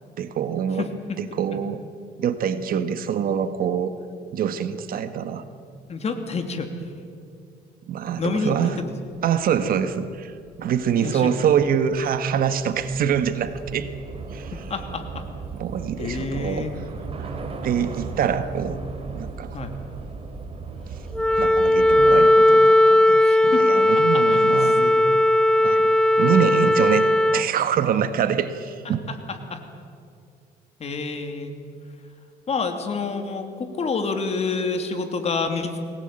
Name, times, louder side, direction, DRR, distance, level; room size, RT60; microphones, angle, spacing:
voice 1, 0.2-0.9 1.2-1.8 2.2-3.9 4.3-5.4 7.9-8.8 9.2-13.9 14.3-14.5 15.5-16.7 17.2-17.4 17.6-18.8 19.1-19.6 21.4-24.8 25.6-29.1, right 8 dB, 60° right, 10 dB, 1.6 m, -25 dB
voice 2, 0.8-1.2 5.9-6.9 8.2-8.9 10.9-11.3 14.5-15.3 16.0-16.7 19.5-19.7 23.2-23.6 24.1-25.1 28.8-29.6 30.8-31.6 32.5-35.8, left 4 dB, 40° left, 6 dB, 2.9 m, -29 dB
Train / Subway metro underground, 9.8-22.3, right 4 dB, 35° right, 3.2 m, -37 dB
Wind instrument woodwind instrument, 21.1-27.5, left 1 dB, 5° left, 0.5 m, -17 dB
22.0 x 19.0 x 9.0 m, 2.3 s
cardioid pair, 110°, 17 cm